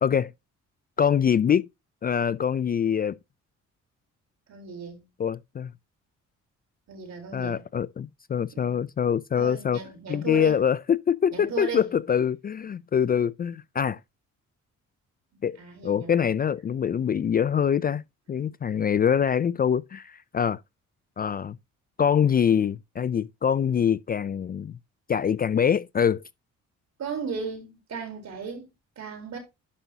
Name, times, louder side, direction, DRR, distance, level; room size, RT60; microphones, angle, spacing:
voice 1, 0.0-0.3 1.0-1.7 2.0-3.2 5.2-5.7 7.3-9.8 10.1-14.0 15.4-15.6 15.8-18.0 18.3-20.6 21.2-21.6 22.0-24.8 25.1-26.2, left 8 dB, 30° left, 0.4 m, -24 dB
voice 2, 4.5-5.0 6.9-7.6 8.5-8.8 9.4-10.6 11.3-11.9 15.6-16.2 27.0-28.7 29.0-29.4, right 5 dB, 60° right, 4.0 m, -36 dB
11.5 x 5.3 x 2.8 m
cardioid pair, 90°, 30 cm